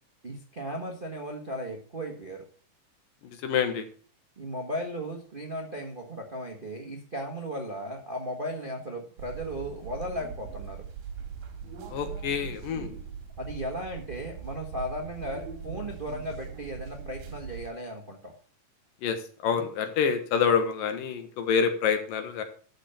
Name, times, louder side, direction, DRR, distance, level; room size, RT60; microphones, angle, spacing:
voice 1, 0.2-2.4 4.4-10.8 13.4-18.3 19.6-19.7, equal, 45° right, 1 dB, 0.6 m, -36 dB
voice 2, 3.2-3.9 11.9-12.9 19.0-22.4, left 7 dB, 85° left, 7 dB, 3.1 m, -27 dB
sound 1, 9.2-17.7, right 6 dB, 90° right, 3.4 m, -41 dB
12.5 x 5.1 x 7.1 m, 0.44 s
omnidirectional pair, 3.9 m